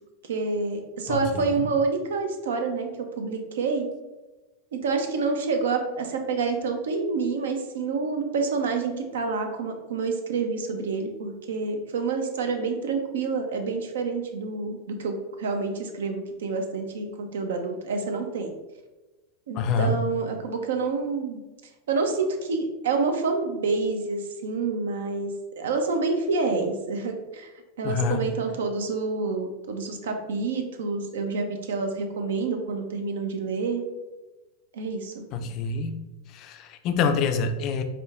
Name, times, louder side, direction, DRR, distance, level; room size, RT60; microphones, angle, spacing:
voice 1, 0.3-2.9 3.2-3.9 4.7-18.5 19.5-21.4 21.9-27.5 27.8-33.8 34.7-35.2, right 4 dB, 75° right, 5 dB, 0.5 m, -28 dB
voice 2, 1.1-1.7 19.6-20.0 27.8-28.3 35.3-36.0 36.3-37.8, left 4 dB, 45° left, 7 dB, 0.4 m, -26 dB
5.0 x 2.2 x 2.4 m, 1.1 s
hypercardioid pair, 90°, 0 cm